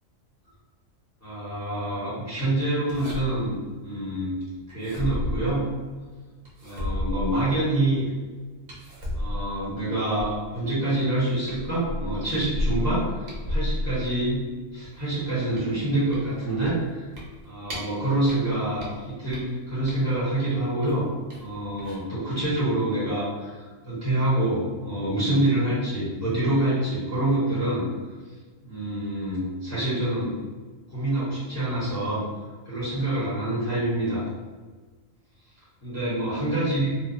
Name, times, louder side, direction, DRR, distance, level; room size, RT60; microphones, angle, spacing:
voice 1, 1.2-4.3 4.7-5.7 6.6-8.0 9.1-14.4 14.7-17.1 17.4-21.1 21.4-27.9 28.6-30.4 30.9-32.2 32.6-34.3 35.8-37.0, right 1 dB, 15° left, -11 dB, 0.9 m, -26 dB
sound 1, 2.9-3.6 4.7-5.9 6.4-7.8 8.7-10.6 11.1-11.2 11.5-14.4 14.8-18.0 18.3-20.3 20.8-21.5 21.8-22.0, left 1 dB, 60° right, 0.9 m, -32 dB
3.0 x 2.0 x 2.5 m, 1.3 s
omnidirectional pair, 1.4 m